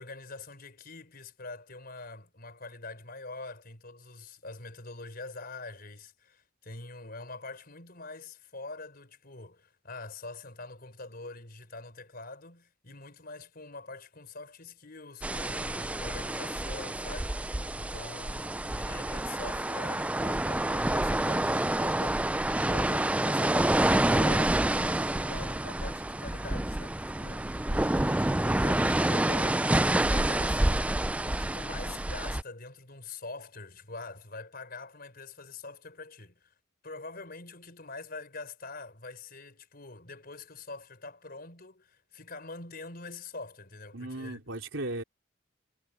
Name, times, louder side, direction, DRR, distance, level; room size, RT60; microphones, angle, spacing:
voice 1, 0.0-27.7 28.0-31.0 31.2-36.5 36.8-44.4, left 3 dB, 50° left, 4.8 m, -44 dB
sound 1, 15.2-32.4, right 1 dB, 5° right, 0.4 m, -28 dB
voice 2, 43.9-45.0, right 2 dB, 75° right, 4.1 m, -37 dB
head